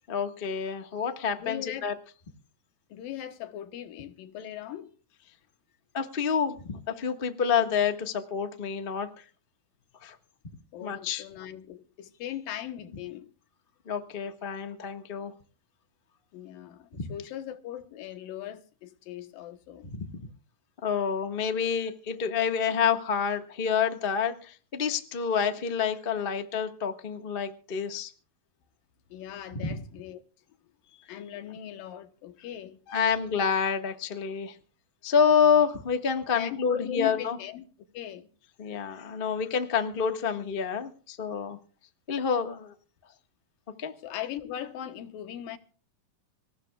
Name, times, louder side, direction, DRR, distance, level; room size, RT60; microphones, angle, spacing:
voice 1, 0.1-1.9 5.9-9.1 10.0-10.1 10.8-11.2 13.9-15.3 17.0-17.1 19.8-20.1 20.8-28.1 29.5-29.8 32.9-34.5 35.0-37.4 38.6-41.6 42.1-42.7 43.8-43.9, left 7 dB, 60° left, 0.5 m, -28 dB
voice 2, 1.4-1.9 2.9-5.0 10.7-13.3 16.3-19.9 29.1-30.2 31.1-33.2 36.4-37.7 37.9-38.3 44.0-45.6, left 11 dB, 80° left, 2.9 m, -39 dB
26.0 x 16.5 x 2.4 m
omnidirectional pair, 4.0 m